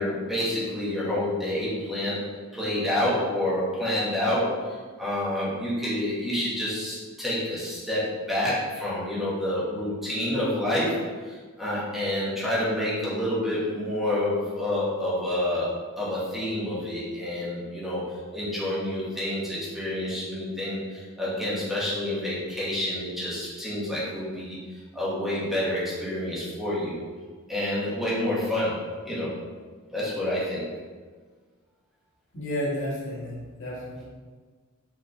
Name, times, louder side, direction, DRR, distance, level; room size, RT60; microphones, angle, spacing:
voice 1, 0.0-2.3 2.5-24.6 24.9-27.1 27.5-29.3 29.9-30.7, left 1 dB, ahead, -9 dB, 1.9 m, -28 dB
voice 2, 32.3-34.0, equal, 60° left, -5 dB, 1.6 m, -32 dB
6.4 x 5.4 x 3.4 m, 1.5 s
head